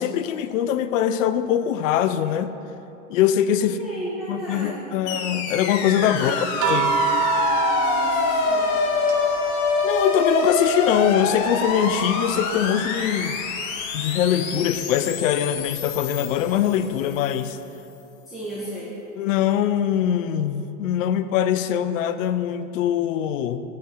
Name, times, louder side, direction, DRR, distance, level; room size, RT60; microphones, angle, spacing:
voice 1, 0.0-2.5 3.1-3.8 4.3-6.4 6.6-6.9 9.8-13.4 13.9-17.6 19.2-23.6, left 10 dB, 65° left, 12 dB, 0.5 m, -22 dB
voice 2, 3.6-5.1 6.1-8.7 18.3-19.0, right 1 dB, ahead, -13 dB, 1.7 m, -35 dB
sound 1, 5.1-17.3, left 4 dB, 40° left, 0.9 m, -26 dB
sound 2, 6.6-11.1 11.4-13.1 14.6-14.8, right 3 dB, 35° right, 0.4 m, -27 dB
13.0 x 4.4 x 3.7 m, 2.9 s
hypercardioid pair, 105°, 42 cm